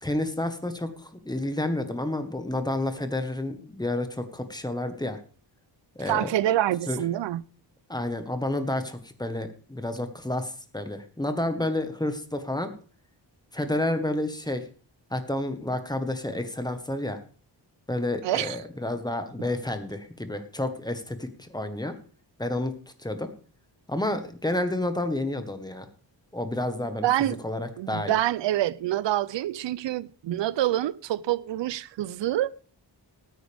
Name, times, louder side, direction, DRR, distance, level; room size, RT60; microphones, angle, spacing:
voice 1, 0.0-5.2 5.9-6.3 6.9-7.0 7.9-12.7 13.5-14.6 15.1-17.2 17.9-21.9 22.4-22.7 23.0-23.3 23.9-25.9 26.3-28.2, left 1 dB, 10° left, 1.3 m, -30 dB
voice 2, 6.1-7.4 18.2-18.6 27.0-27.4 27.8-32.5, right 13 dB, 75° right, 0.6 m, -26 dB
19.0 x 9.2 x 3.5 m
wide cardioid pair, 130°, 44 cm